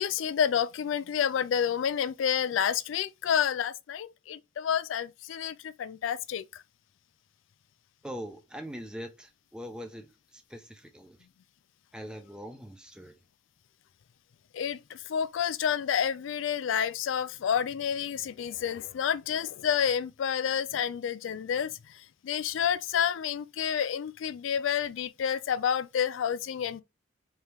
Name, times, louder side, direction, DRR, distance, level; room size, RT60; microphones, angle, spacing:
voice 1, 0.0-6.4 14.5-21.7 22.2-26.8, left 8 dB, 85° left, 0.3 m, -29 dB
voice 2, 8.0-10.1 10.5-11.2 11.9-13.1, equal, 5° right, 0.6 m, -42 dB
4.5 x 2.9 x 3.4 m
head